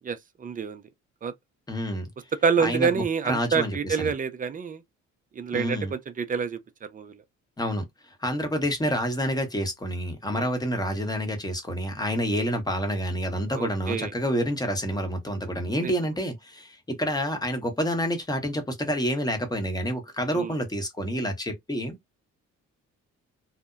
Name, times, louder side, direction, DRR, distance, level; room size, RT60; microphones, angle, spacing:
voice 1, 0.1-0.8 1.2-1.3 2.4-4.8 5.4-7.1 10.3-10.5 13.5-14.1 15.8-15.9 20.3-20.5, right 6 dB, 25° right, 0.4 m, -27 dB
voice 2, 1.7-2.1 2.6-4.1 5.5-5.9 7.6-22.0, equal, 15° left, 0.9 m, -28 dB
2.7 x 2.1 x 2.3 m
cardioid pair, 90°, 30 cm